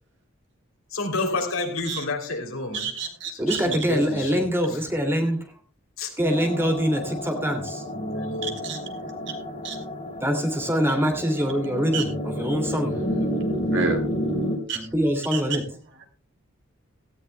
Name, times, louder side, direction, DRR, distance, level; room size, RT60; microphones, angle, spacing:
voice 1, 0.9-2.9 3.3-4.4 6.0-6.1 7.9-8.6, left 2 dB, 80° left, 3 dB, 3.2 m, -30 dB
voice 2, 2.7-3.6 8.4-8.8 9.6-9.8 11.9-12.0 13.7-14.0 14.7-14.8 15.3-15.4, right 4 dB, 60° right, 4 dB, 2.8 m, -29 dB
voice 3, 3.4-5.5 6.2-7.8 10.2-13.1 14.7-15.7, equal, 10° right, 3 dB, 2.5 m, -24 dB
sound 1, 6.2-14.6, equal, 35° left, 2.9 m, -30 dB
17.0 x 14.5 x 2.2 m, 0.37 s
head